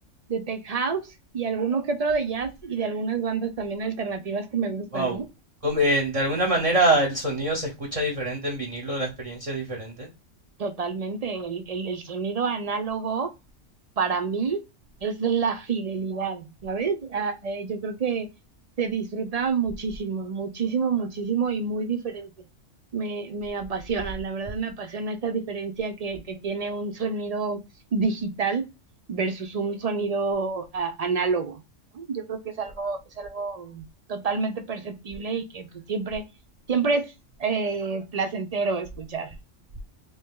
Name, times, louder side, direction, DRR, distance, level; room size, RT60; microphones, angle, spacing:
voice 1, 0.3-5.2 10.6-13.3 14.0-14.6 15.0-18.3 18.8-22.3 22.9-27.6 27.9-28.6 29.1-31.6 31.9-36.2 36.7-37.1 37.4-39.3, right 5 dB, 60° right, 8 dB, 0.4 m, -28 dB
voice 2, 5.6-10.1, right 1 dB, 35° right, 0 dB, 0.8 m, -25 dB
3.4 x 2.8 x 3.5 m, 0.26 s
omnidirectional pair, 1.3 m